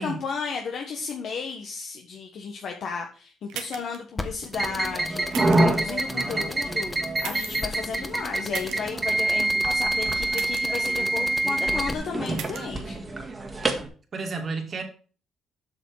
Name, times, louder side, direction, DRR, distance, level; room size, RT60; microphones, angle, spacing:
voice 1, 0.0-13.0, left 5 dB, 65° left, 2 dB, 1.2 m, -34 dB
sound 1, 3.5-4.0 5.3-5.8 7.2-7.7 8.5-8.8 10.3-10.8 12.3-12.6, right 9 dB, 85° right, 1.2 m, -37 dB
sound 2, 4.2-11.9, left 2 dB, 20° left, 1.2 m, -35 dB
sound 3, 4.5-13.9, right 2 dB, 25° right, 1.7 m, -26 dB
voice 2, 5.9-6.5 14.1-14.8, right 3 dB, 45° right, 3 dB, 2.3 m, -33 dB
8.0 x 6.2 x 4.8 m, 0.39 s
cardioid pair, 90°, 0 cm